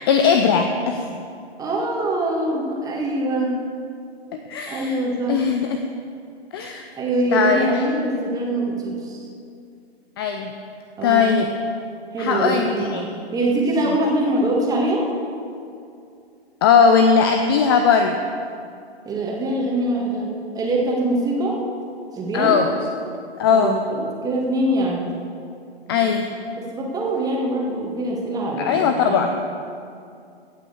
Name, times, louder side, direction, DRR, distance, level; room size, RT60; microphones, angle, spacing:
voice 1, 0.1-1.1 4.5-5.0 5.3-5.8 6.5-6.8 7.3-7.7 10.2-10.5 11.0-11.5 12.2-12.7 12.9-13.0 16.6-18.2 22.3-22.7 23.4-23.8 25.9-26.3 28.6-29.3, left 6 dB, 25° left, 6 dB, 0.5 m, -18 dB
voice 2, 1.6-3.6 4.7-5.5 7.0-9.3 11.0-11.3 12.1-13.1 13.3-15.0 19.1-20.3 20.5-21.6 22.1-22.6 23.5-25.0 25.9-26.1 26.5-29.3, right 1 dB, 10° right, -2 dB, 1.9 m, -23 dB
16.0 x 6.1 x 7.1 m, 2.4 s
figure-of-eight pair, 125°, 32 cm